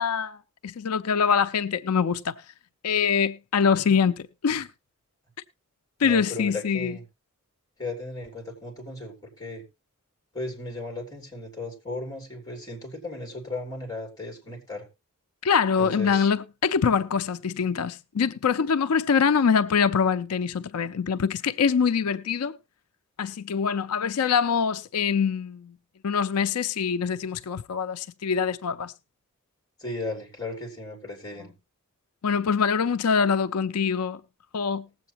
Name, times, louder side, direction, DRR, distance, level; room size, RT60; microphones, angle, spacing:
voice 1, 0.0-2.3 2.8-4.7 6.0-7.0 15.4-22.5 23.2-25.7 26.0-28.9 32.2-34.2 34.5-34.9, left 6 dB, 85° left, 0.5 m, -24 dB
voice 2, 6.0-7.0 7.8-9.6 10.3-14.8 15.8-16.3 29.8-31.5, left 2 dB, 15° left, 3.2 m, -36 dB
19.5 x 7.8 x 2.9 m
head